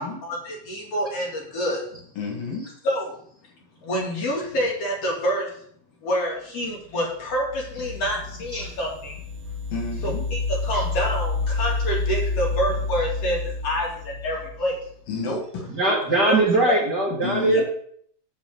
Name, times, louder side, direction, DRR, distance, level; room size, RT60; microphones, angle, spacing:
voice 1, 0.0-1.8 2.8-3.1 3.8-5.5 6.0-9.2 10.0-14.8 16.3-16.4 16.7-16.8 17.5-17.6, equal, 45° left, -2 dB, 3.8 m, -27 dB
voice 2, 2.2-2.7 9.7-10.2 15.1-15.7 17.2-17.6, left 3 dB, 80° left, -1 dB, 4.2 m, -30 dB
sound 1, 7.3-14.8, left 3 dB, 60° right, 3.5 m, -29 dB
voice 3, 15.7-17.6, right 2 dB, 35° right, -4 dB, 2.4 m, -21 dB
7.9 x 5.5 x 7.8 m, 0.62 s
omnidirectional pair, 3.9 m